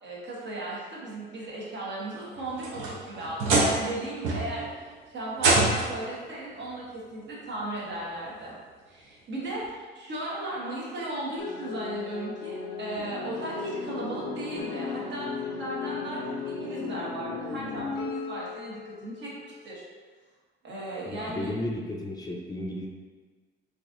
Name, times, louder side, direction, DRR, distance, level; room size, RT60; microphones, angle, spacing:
voice 1, 0.0-8.6 8.9-19.8 20.6-21.5, right 1 dB, 65° right, -5 dB, 1.0 m, -36 dB
sound 1, 2.3-3.9 4.2-4.7 5.4-6.1 7.2-7.3 8.0-8.1 9.6-9.7, right 2 dB, 80° right, 0.7 m, -25 dB
sound 2, 11.4-19.8, left 5 dB, 90° left, 0.5 m, -36 dB
voice 2, 21.1-22.9, left 1 dB, 20° left, -1 dB, 0.4 m, -33 dB
3.9 x 2.5 x 2.5 m, 1.4 s
cardioid pair, 90°, 20 cm